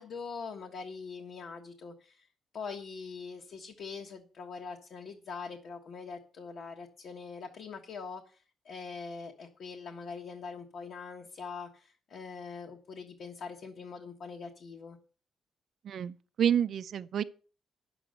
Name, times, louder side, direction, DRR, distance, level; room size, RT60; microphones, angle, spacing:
voice 1, 0.0-2.3 2.5-15.0, left 5 dB, 55° left, 1.4 m, -43 dB
voice 2, 15.8-17.2, right 9 dB, 55° right, 0.5 m, -29 dB
10.0 x 7.0 x 7.9 m
wide cardioid pair, 170°, 0 cm